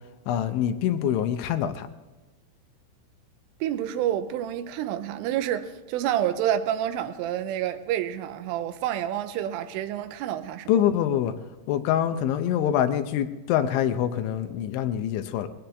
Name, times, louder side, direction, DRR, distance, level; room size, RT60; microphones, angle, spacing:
voice 1, 0.3-1.9 10.7-11.3 11.7-15.5, left 10 dB, 80° left, 2.9 m, -25 dB
voice 2, 3.6-10.8, right 11 dB, 85° right, 3.3 m, -28 dB
20.5 x 17.0 x 3.4 m
omnidirectional pair, 5.9 m